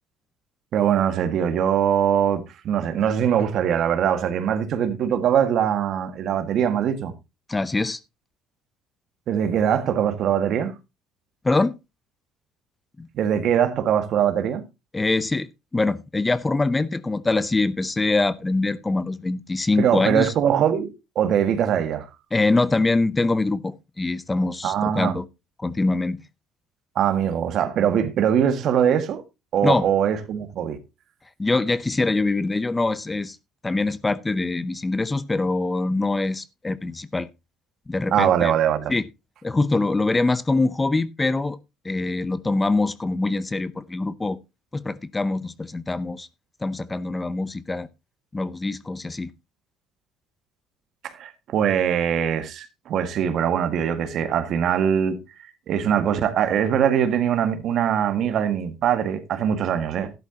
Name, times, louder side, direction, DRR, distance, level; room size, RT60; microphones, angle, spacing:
voice 1, 0.7-7.1 9.3-10.7 13.1-14.6 19.8-22.1 24.6-25.2 27.0-29.2 29.5-30.8 38.1-38.9 51.0-55.2 55.7-60.1, right 9 dB, 60° right, 1.7 m, -22 dB
voice 2, 7.5-8.0 11.4-11.7 13.0-13.1 14.9-20.3 22.3-25.2 25.6-26.2 29.6-29.9 31.4-33.4 33.6-37.3 37.9-38.5 38.9-39.0 39.4-41.6 41.8-44.4 44.7-46.3 46.6-47.9 48.3-49.3, left 3 dB, 15° left, 0.7 m, -24 dB
12.5 x 11.0 x 2.8 m
supercardioid pair, 90°, 0 cm